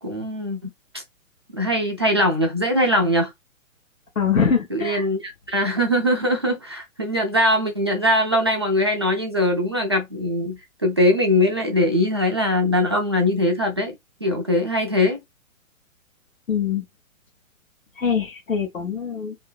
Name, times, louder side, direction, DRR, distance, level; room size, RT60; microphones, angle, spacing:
voice 1, 0.0-1.0 1.6-3.3 4.7-14.0 14.2-15.2, left 1 dB, 20° right, 0.3 m, -21 dB
voice 2, 4.1-5.1 16.5-16.8 17.9-19.4, left 6 dB, 75° left, 1.0 m, -23 dB
2.8 x 2.5 x 4.2 m
figure-of-eight pair, 120°, 40 cm